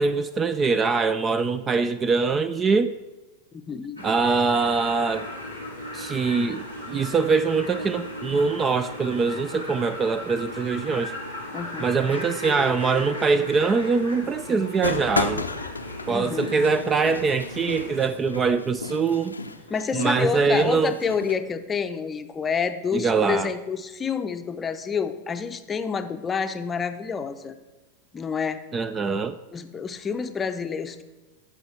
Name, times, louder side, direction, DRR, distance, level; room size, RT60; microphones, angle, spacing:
voice 1, 0.0-2.9 4.0-5.3 5.9-11.1 11.8-15.4 16.1-19.3 19.9-20.9 22.9-23.5 28.7-29.4, right 4 dB, 20° right, 14 dB, 0.3 m, -23 dB
voice 2, 3.7-4.0 11.5-11.9 16.1-16.5 19.7-27.5 28.1-28.6 29.5-31.0, left 6 dB, 20° left, 9 dB, 0.6 m, -28 dB
sound 1, 4.0-18.1, left 1 dB, 90° right, 2.1 m, -36 dB
sound 2, 14.8-21.4, left 3 dB, 80° left, 0.6 m, -33 dB
14.5 x 5.7 x 4.3 m, 1.2 s
figure-of-eight pair, 90°, 0 cm